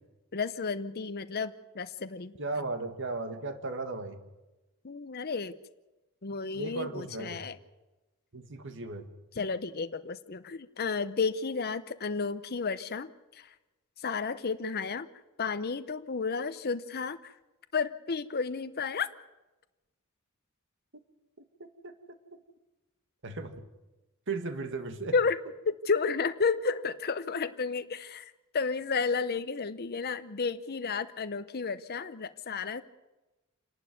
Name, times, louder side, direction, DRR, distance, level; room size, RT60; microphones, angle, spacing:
voice 1, 0.3-2.3 4.8-5.5 6.2-7.6 9.4-13.1 13.4-13.5 14.0-15.1 15.4-17.3 17.7-19.1 25.1-25.4 25.7-32.8, left 5 dB, 45° left, 11 dB, 0.8 m, -32 dB
voice 2, 2.4-4.2 6.5-7.4 8.3-9.1 20.9-21.0 21.4-21.9 23.2-23.7 24.3-25.1, right 3 dB, 60° right, 8 dB, 2.0 m, -36 dB
28.0 x 11.5 x 9.3 m, 1.1 s
head